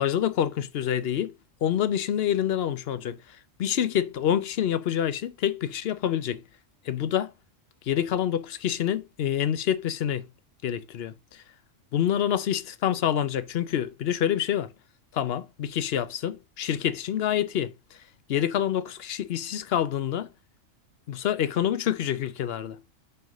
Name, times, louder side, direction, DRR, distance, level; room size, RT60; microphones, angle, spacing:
voice 1, 0.0-1.3 1.6-6.4 6.8-7.3 7.9-10.3 10.6-11.4 11.9-14.7 15.1-18.0 18.3-20.3 21.1-22.8, left 10 dB, 60° left, 0.7 m, -27 dB
6.3 x 4.7 x 4.9 m
omnidirectional pair, 1.3 m